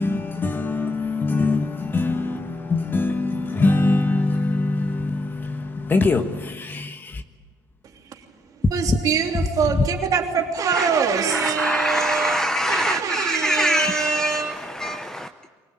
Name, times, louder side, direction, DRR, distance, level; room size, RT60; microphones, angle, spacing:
voice 1, 0.0-7.2 13.8-13.9, left 3 dB, 25° left, 1.3 m, -23 dB
voice 2, 8.5-14.6, right 6 dB, 45° right, 3.2 m, -24 dB
voice 3, 11.3-15.5, equal, 5° left, 0.8 m, -24 dB
24.5 x 18.5 x 9.2 m
cardioid pair, 125°, 9 cm